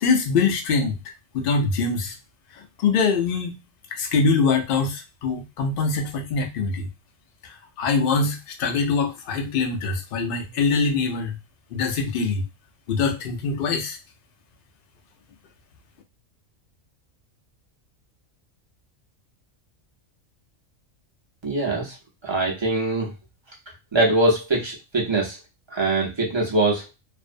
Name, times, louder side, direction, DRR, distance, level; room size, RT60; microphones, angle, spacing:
voice 1, 0.0-1.0 1.3-2.1 2.8-3.6 3.9-6.9 7.4-11.4 11.7-12.4 12.9-14.0, left 4 dB, 60° left, 3 dB, 0.6 m, -23 dB
voice 2, 21.4-22.0 22.2-23.1 23.9-25.4 25.7-26.9, right 2 dB, 30° right, -2 dB, 0.5 m, -22 dB
2.5 x 2.0 x 2.5 m, 0.24 s
omnidirectional pair, 1.4 m